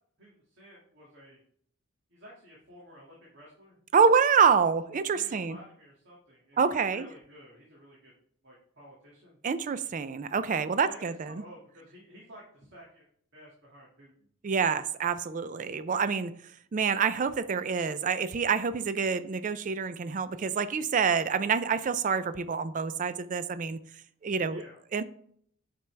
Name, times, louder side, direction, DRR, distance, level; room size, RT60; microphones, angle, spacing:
voice 1, 0.2-1.4 2.1-3.8 5.1-8.1 8.4-9.4 10.8-13.0 13.3-14.3 24.5-24.8, equal, 55° right, 2.1 m, -52 dB
voice 2, 3.9-5.6 6.6-7.1 9.4-11.3 14.4-16.3 16.7-23.8 24.2-24.6 24.9-25.0, right 6 dB, 40° right, 0.4 m, -27 dB
8.3 x 5.9 x 3.3 m
head